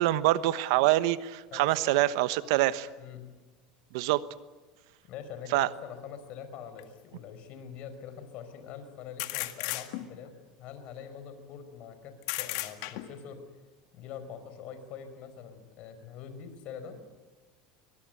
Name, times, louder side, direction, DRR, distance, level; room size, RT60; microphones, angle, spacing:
voice 1, 0.0-2.9 3.9-4.2 5.5-5.7, right 16 dB, 75° right, 14 dB, 1.2 m, -25 dB
voice 2, 1.5-2.2 3.0-3.3 5.0-10.3 10.6-13.4 13.9-17.0, left 7 dB, 55° left, 9 dB, 5.0 m, -44 dB
sound 1, 6.8-6.9 9.2-10.3 12.2-13.3, left 18 dB, 75° left, 1.9 m, -34 dB
24.0 x 22.0 x 9.2 m, 1.2 s
supercardioid pair, 120°, 3 cm